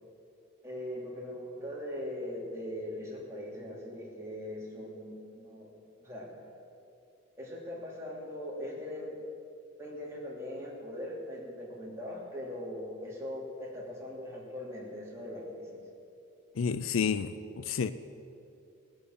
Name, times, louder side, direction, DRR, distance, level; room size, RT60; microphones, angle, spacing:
voice 1, 0.6-5.7 6.0-6.3 7.4-9.2 9.8-15.8, left 1 dB, 15° right, -5 dB, 2.9 m, -40 dB
voice 2, 16.6-17.9, left 6 dB, 65° left, 13 dB, 0.4 m, -30 dB
18.0 x 6.9 x 7.8 m, 2.7 s
head